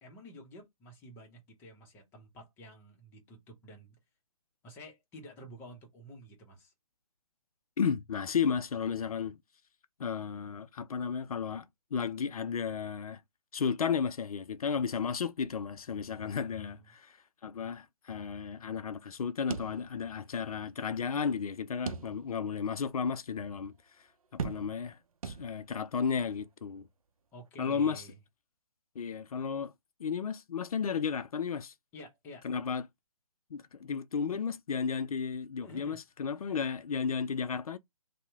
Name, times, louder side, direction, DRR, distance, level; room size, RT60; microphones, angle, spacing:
voice 1, 0.0-4.0 4.6-6.7 16.3-16.9 27.3-28.1 31.9-32.5 35.6-36.0 36.5-36.6, equal, 10° left, 0.7 m, -51 dB
voice 2, 7.8-9.4 10.0-11.7 11.9-13.2 13.5-17.2 17.4-24.1 24.3-25.0 25.2-26.8 27.6-28.0 29.0-29.7 30.0-31.7 32.4-32.8 33.5-37.8, left 6 dB, 75° left, 0.4 m, -33 dB
sound 1, 19.5-20.4 20.7-20.8 21.9-22.5 23.0-23.1 24.4-24.9 25.2-25.9, right 6 dB, 70° right, 0.6 m, -39 dB
2.8 x 2.1 x 3.4 m
hypercardioid pair, 150°, 19 cm